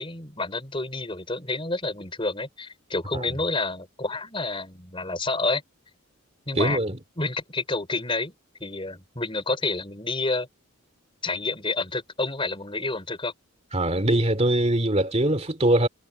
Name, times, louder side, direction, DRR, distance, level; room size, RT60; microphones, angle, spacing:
voice 1, 0.0-5.6 6.5-6.8 7.2-10.5 11.2-13.3, left 3 dB, 25° left, 4.9 m, -29 dB
voice 2, 6.6-7.0 13.7-15.9, right 1 dB, 30° right, 2.7 m, -22 dB
head